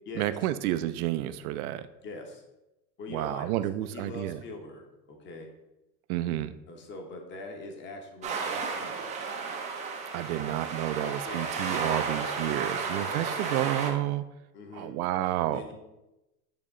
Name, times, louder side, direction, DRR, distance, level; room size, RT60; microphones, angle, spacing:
voice 1, 0.1-1.8 3.1-4.4 6.1-6.5 10.1-14.3 14.7-15.6, right 13 dB, 65° right, 13 dB, 0.6 m, -30 dB
voice 2, 2.0-2.4 3.0-5.5 6.7-9.0 11.2-11.8 12.5-12.9 14.5-14.9 15.5-15.7, left 2 dB, 25° left, 3 dB, 0.9 m, -43 dB
sound 1, 8.2-13.9, right 5 dB, 15° right, 0.5 m, -33 dB
8.6 x 3.0 x 3.7 m, 0.95 s
supercardioid pair, 135°, 47 cm